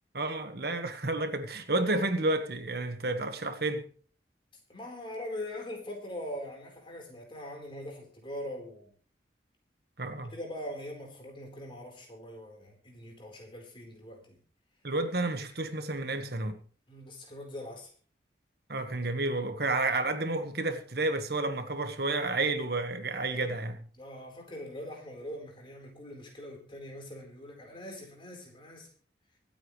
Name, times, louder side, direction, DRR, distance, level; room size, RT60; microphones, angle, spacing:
voice 1, 0.1-3.8 10.0-10.3 14.8-16.6 18.7-23.8, right 2 dB, 60° right, 1.6 m, -31 dB
voice 2, 4.7-8.9 10.3-14.4 16.9-17.9 23.9-28.9, left 1 dB, 30° left, 4.3 m, -42 dB
24.5 x 9.0 x 3.3 m
head